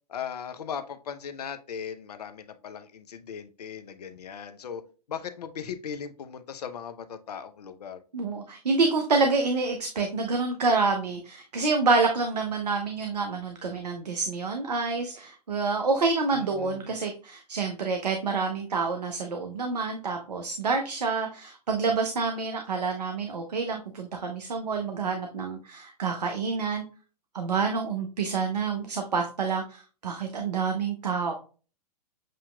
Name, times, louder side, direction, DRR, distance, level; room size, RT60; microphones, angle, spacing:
voice 1, 0.1-4.8 5.1-8.0 16.3-16.9, left 7 dB, 70° left, 10 dB, 0.7 m, -38 dB
voice 2, 8.1-26.8 27.3-31.4, right 4 dB, 80° right, 4 dB, 0.8 m, -28 dB
7.5 x 2.9 x 2.2 m, 0.36 s
figure-of-eight pair, 110°, 21 cm